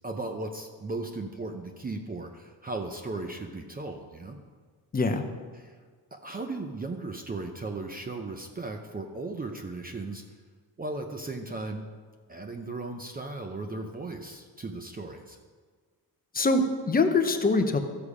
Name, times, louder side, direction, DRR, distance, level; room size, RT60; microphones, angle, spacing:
voice 1, 0.0-4.4 5.5-5.8 6.1-10.2 10.8-11.9 12.3-15.4, right 2 dB, 20° right, 4 dB, 0.6 m, -36 dB
voice 2, 4.9-5.2 16.3-17.8, left 3 dB, 20° left, 5 dB, 0.8 m, -23 dB
13.5 x 6.9 x 4.9 m, 1.5 s
cardioid pair, 150°, 40 cm